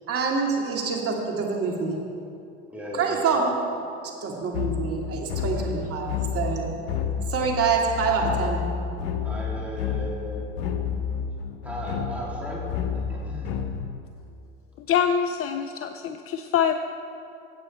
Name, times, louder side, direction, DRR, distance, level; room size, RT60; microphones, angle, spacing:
voice 1, 0.1-2.0 2.9-3.6 4.2-6.7 7.3-8.6, right 5 dB, 45° right, 0 dB, 2.4 m, -26 dB
voice 2, 2.7-3.3 5.4-5.7 9.2-10.6 11.6-12.6 12.9-13.6, equal, 5° right, -6 dB, 3.2 m, -36 dB
sound 1, 4.5-14.0, left 7 dB, 75° left, 1.0 m, -30 dB
voice 3, 14.9-16.7, left 8 dB, 45° left, 8 dB, 0.6 m, -24 dB
14.5 x 8.5 x 4.4 m, 2.5 s
hypercardioid pair, 75°, 32 cm